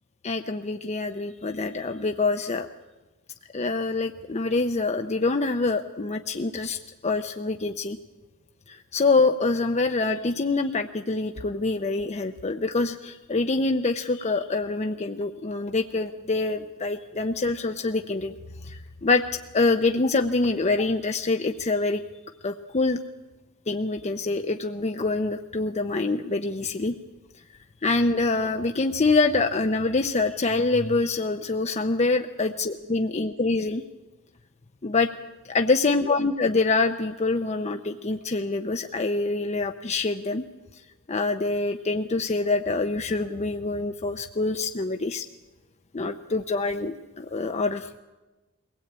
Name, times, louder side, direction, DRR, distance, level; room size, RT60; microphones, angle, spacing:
voice 1, 0.2-2.7 3.5-8.0 8.7-18.3 18.6-22.0 22.4-23.0 23.7-27.0 27.8-33.8 34.8-35.1 35.4-40.5 41.1-45.3 45.9-48.0, left 3 dB, 30° left, 6 dB, 0.6 m, -25 dB
22.5 x 17.5 x 8.7 m, 1.2 s
head